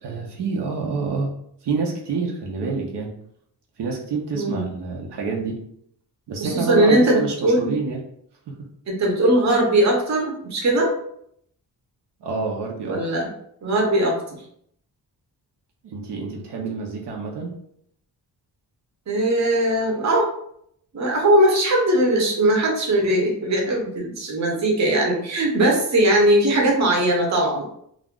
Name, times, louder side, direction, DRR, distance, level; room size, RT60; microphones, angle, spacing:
voice 1, 0.0-1.3 1.6-3.1 3.8-5.6 6.3-8.0 8.5-8.6 12.2-13.0 15.8-17.6, right 4 dB, 80° right, -1 dB, 0.7 m, -27 dB
voice 2, 4.3-4.7 6.4-7.7 8.9-10.9 12.9-13.3 13.6-14.4 19.1-20.3 20.9-27.7, right 1 dB, 45° right, 0 dB, 0.7 m, -20 dB
2.4 x 2.0 x 3.6 m, 0.69 s
wide cardioid pair, 145°, 40 cm